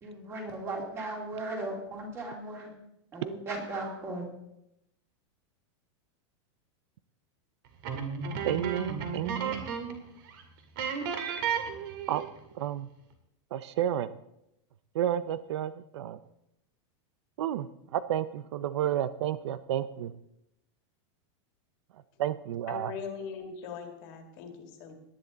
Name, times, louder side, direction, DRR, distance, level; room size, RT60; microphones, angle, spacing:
voice 1, 0.0-2.7 3.1-4.2, right 2 dB, 15° right, 1 dB, 2.6 m, -37 dB
sound 1, 7.8-10.0 10.3-10.4 10.8-12.4, right 6 dB, 45° right, 2.1 m, -33 dB
voice 2, 8.4-9.7 12.1-12.2 12.6-12.9 13.5-14.1 14.9-16.2 17.4-17.7 17.9-20.1 22.2-22.9, right 11 dB, 65° right, 14 dB, 0.6 m, -31 dB
voice 3, 22.7-24.9, left 6 dB, 35° left, 5 dB, 2.0 m, -41 dB
18.5 x 10.5 x 4.0 m, 0.83 s
supercardioid pair, 180°, 15 cm